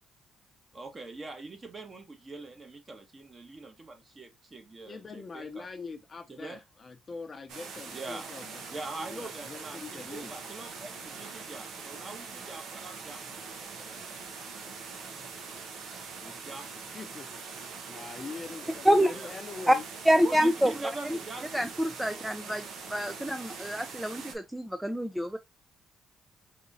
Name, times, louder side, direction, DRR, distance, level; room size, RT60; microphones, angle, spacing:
voice 1, 0.7-5.7 6.3-6.6 7.9-8.3 8.7-13.4 13.8-14.1 16.4-16.7 19.1-19.3 20.2-21.6 22.1-22.3, right 3 dB, 30° right, 1.4 m, -43 dB
voice 2, 4.8-10.3 16.2-16.4 16.9-17.3 17.9-19.8, left 4 dB, 35° left, 0.7 m, -43 dB
sound 1, 7.5-24.4, right 5 dB, 80° right, 1.2 m, -43 dB
voice 3, 20.1-20.7 21.1-21.2 21.5-22.6 22.9-25.4, equal, 5° right, 0.5 m, -26 dB
4.2 x 3.6 x 2.7 m
cardioid pair, 90°, 0 cm